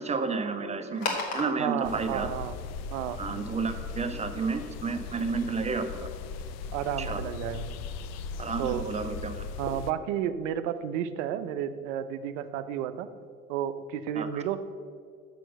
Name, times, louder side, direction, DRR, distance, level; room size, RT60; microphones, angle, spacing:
voice 1, 0.0-2.3 3.2-6.1 7.0-7.2 8.4-9.5 14.2-14.4, right 4 dB, 15° right, 7 dB, 0.7 m, -31 dB
sound 1, 0.9-7.0, left 3 dB, 65° left, 1.9 m, -40 dB
voice 2, 1.6-2.5 2.9-3.2 6.7-7.6 8.6-8.8 9.6-13.1 13.5-14.6, right 10 dB, 60° right, 12 dB, 0.7 m, -32 dB
sound 2, 1.8-9.9, left 5 dB, 40° left, 0.5 m, -38 dB
6.9 x 6.1 x 6.6 m, 2.2 s
hypercardioid pair, 75°, 43 cm